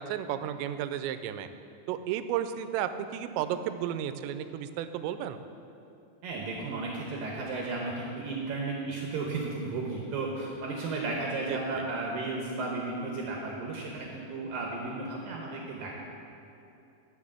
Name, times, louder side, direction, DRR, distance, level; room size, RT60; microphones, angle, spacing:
voice 1, 0.0-1.5 1.9-5.4 11.5-11.6, right 10 dB, 90° right, 10 dB, 2.8 m, -33 dB
voice 2, 6.2-15.9, right 3 dB, 70° right, -1 dB, 2.3 m, -34 dB
11.5 x 6.4 x 7.4 m, 2.7 s
omnidirectional pair, 5.0 m